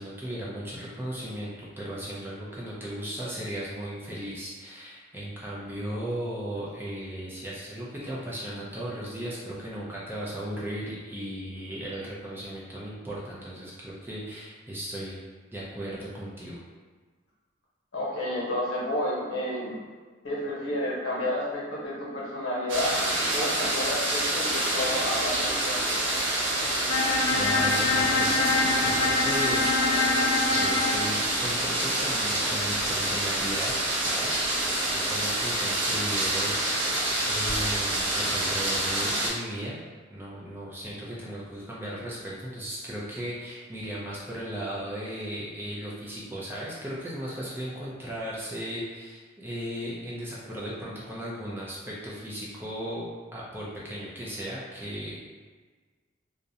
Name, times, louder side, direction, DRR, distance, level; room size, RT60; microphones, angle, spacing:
voice 1, 0.0-15.2 15.5-16.6 27.3-28.5 28.8-29.7 30.4-36.9 37.3-39.8 40.1-55.2, equal, 10° right, -7 dB, 0.4 m, -36 dB
voice 2, 17.9-19.8 20.2-23.0 23.3-25.8, left 1 dB, 85° left, -6 dB, 0.9 m, -31 dB
sound 1, 22.7-39.3, right 1 dB, 70° right, 0.6 m, -27 dB
Bowed string instrument, 26.9-31.1, left 3 dB, 70° left, 0.3 m, -25 dB
2.4 x 2.0 x 2.7 m, 1.4 s
head